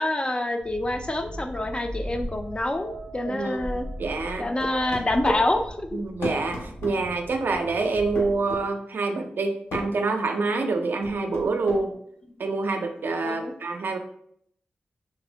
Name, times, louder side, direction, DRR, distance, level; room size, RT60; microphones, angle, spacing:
voice 1, 0.0-3.9 4.4-6.0 13.2-13.5, left 1 dB, 25° left, 6 dB, 0.4 m, -27 dB
sound 1, 0.6-8.4, equal, 60° left, 1.1 m, -39 dB
voice 2, 3.3-4.5 5.9-11.9 12.4-14.0, right 3 dB, 65° right, 5 dB, 0.4 m, -27 dB
sound 2, 4.6-5.4 6.2-7.0 8.2-8.6 9.7-9.9 11.0-11.8, left 1 dB, 85° left, 0.7 m, -31 dB
3.2 x 2.0 x 2.8 m, 0.69 s
cardioid pair, 50°, 4 cm